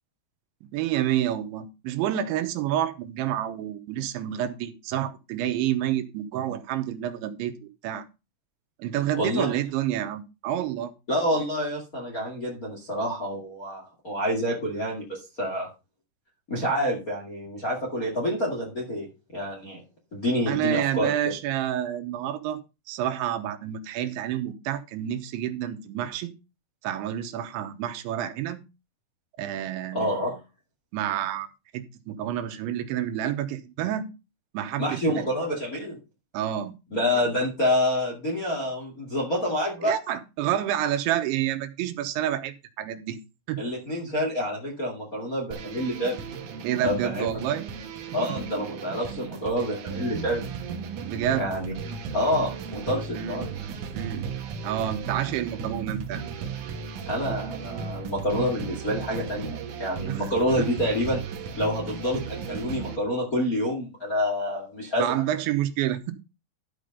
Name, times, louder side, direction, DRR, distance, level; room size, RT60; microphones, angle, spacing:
voice 1, 0.7-8.0 8.8-10.9 20.5-22.6 22.9-26.3 26.8-28.6 29.4-30.2 30.9-31.5 31.7-34.1 34.5-35.3 36.3-36.8 39.8-43.2 43.5-43.6 46.6-47.7 51.1-51.5 53.2-53.4 53.9-54.3 54.6-56.3 60.1-60.3 60.6-60.7 65.0-66.1, right 11 dB, 85° right, 3.3 m, -29 dB
voice 2, 9.2-9.5 11.1-15.7 16.5-19.8 20.1-21.1 29.9-30.4 34.8-36.0 36.9-39.9 43.6-46.2 46.8-47.3 48.1-50.5 51.4-51.7 52.1-53.7 57.0-61.2 61.6-65.1, equal, 30° left, 1.6 m, -28 dB
sound 1, 45.5-63.0, right 6 dB, 65° right, 2.1 m, -35 dB
12.5 x 5.2 x 5.3 m
omnidirectional pair, 5.2 m